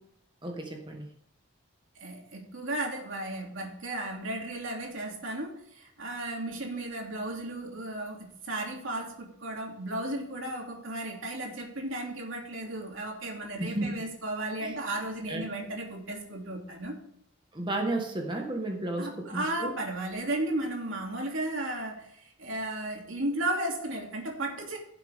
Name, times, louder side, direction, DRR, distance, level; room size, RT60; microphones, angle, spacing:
voice 1, 0.4-1.1 13.6-13.9 14.6-14.8 15.3-15.5 17.5-19.7, right 2 dB, 25° right, 2 dB, 1.4 m, -33 dB
voice 2, 2.0-17.0 19.0-24.8, right 1 dB, 70° right, 0 dB, 2.8 m, -34 dB
15.5 x 7.6 x 3.6 m, 0.73 s
head